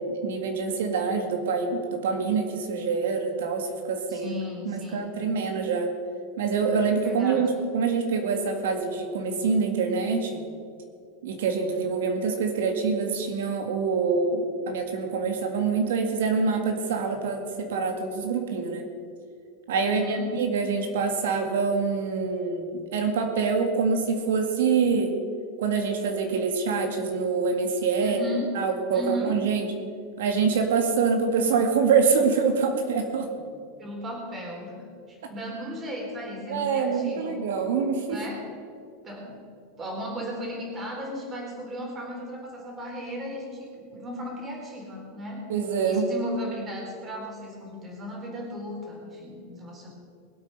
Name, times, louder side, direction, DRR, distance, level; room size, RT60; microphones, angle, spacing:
voice 1, 0.0-4.3 4.7-5.9 6.4-10.4 11.2-18.9 19.7-25.1 25.6-28.2 28.5-29.7 30.2-33.3 36.5-38.2 45.5-46.1, right 5 dB, 85° right, 4 dB, 2.1 m, -25 dB
voice 2, 4.1-5.1 7.0-7.4 19.8-20.3 28.0-28.5 28.9-29.3 33.8-37.4 38.1-38.5 39.0-39.4 39.8-45.4 45.8-49.9, equal, 20° right, -1 dB, 3.7 m, -36 dB
22.0 x 8.6 x 5.5 m, 2.3 s
supercardioid pair, 165°, 0 cm